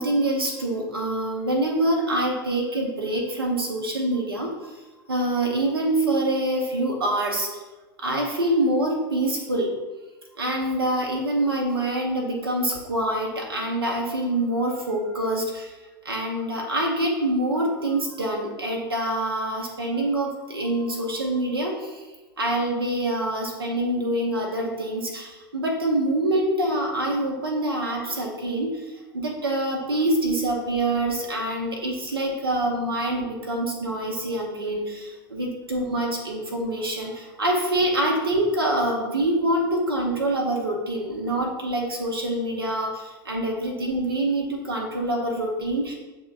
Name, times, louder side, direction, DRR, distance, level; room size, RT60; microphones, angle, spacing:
voice 1, 0.0-4.8 5.1-7.6 8.0-9.7 10.4-15.8 16.0-22.0 22.4-45.9, right 1 dB, 85° right, 0 dB, 0.7 m, -25 dB
7.9 x 2.8 x 2.4 m, 1.2 s
figure-of-eight pair, 85°, 12 cm